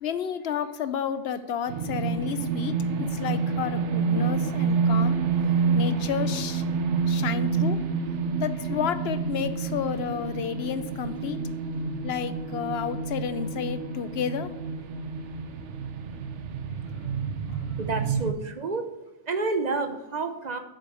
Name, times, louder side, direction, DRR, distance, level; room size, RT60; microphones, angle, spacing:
voice 1, 0.0-5.2 5.7-6.6 7.1-7.8 8.4-11.4 12.0-14.5, left 8 dB, 60° left, 12 dB, 0.9 m, -31 dB
sound 1, 1.7-18.3, right 5 dB, 75° right, 1.1 m, -28 dB
voice 2, 17.8-18.9 19.3-20.6, right 3 dB, 40° right, 7 dB, 0.9 m, -29 dB
8.1 x 6.7 x 6.2 m, 0.95 s
omnidirectional pair, 1.2 m